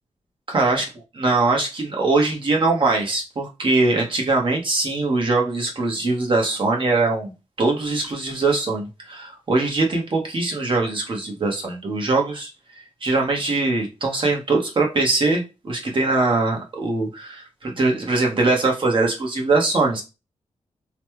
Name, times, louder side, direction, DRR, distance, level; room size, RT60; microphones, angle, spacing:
voice 1, 0.5-0.9 1.2-7.3 7.6-12.5 13.0-20.0, right 3 dB, 45° right, 1.2 m, -22 dB
3.1 x 2.2 x 3.1 m
wide cardioid pair, 110°, 12 cm